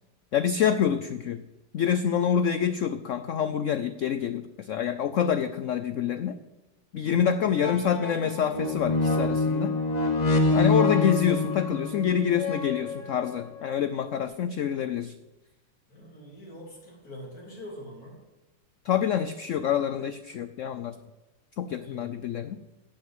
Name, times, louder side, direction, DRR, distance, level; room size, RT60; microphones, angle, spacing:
voice 1, 0.3-1.4 1.7-6.4 6.9-9.8 10.5-15.1 18.8-20.9 21.6-22.6, left 8 dB, 80° left, 11 dB, 0.6 m, -26 dB
voice 2, 6.9-7.9 15.9-18.2 21.7-22.1, equal, 55° left, -2 dB, 3.7 m, -45 dB
sound 1, 7.1-7.2 7.5-13.4 14.1-14.2, left 3 dB, 30° left, 0.8 m, -26 dB
16.5 x 6.4 x 7.9 m, 1.1 s
omnidirectional pair, 2.0 m